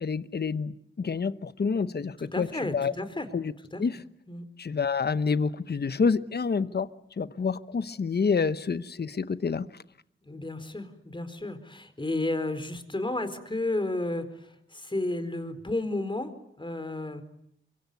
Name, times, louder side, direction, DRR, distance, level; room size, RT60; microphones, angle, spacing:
voice 1, 0.0-2.9 3.3-3.4 3.8-4.0 4.6-6.9 7.2-9.6, left 5 dB, 50° left, 14 dB, 1.0 m, -28 dB
voice 2, 2.2-3.3 3.7-3.8 4.3-4.4 10.3-16.3 16.6-17.2, left 2 dB, 25° left, 10 dB, 4.3 m, -32 dB
24.5 x 23.5 x 9.5 m, 0.73 s
cardioid pair, 60°, 21 cm